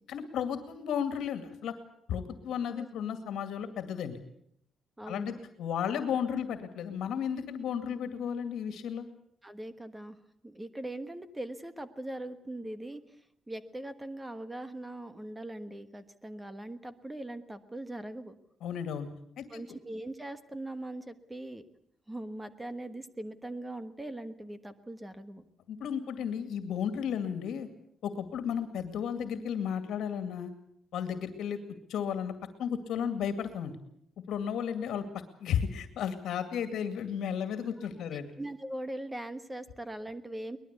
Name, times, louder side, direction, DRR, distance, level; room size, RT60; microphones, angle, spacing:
voice 1, 0.1-1.7 2.1-4.2 5.0-9.1 18.6-19.1 19.4-19.6 25.7-27.7 28.0-30.5 30.9-31.6 31.9-32.3 32.6-33.7 34.3-35.0 35.4-38.3, left 8 dB, 70° left, 9 dB, 2.3 m, -33 dB
voice 2, 5.0-5.4 9.4-10.2 10.4-13.0 13.5-18.4 19.5-21.6 22.1-25.4 38.4-40.6, right 1 dB, 10° right, 11 dB, 1.4 m, -41 dB
23.5 x 20.0 x 8.3 m, 0.69 s
cardioid pair, 175°, 0 cm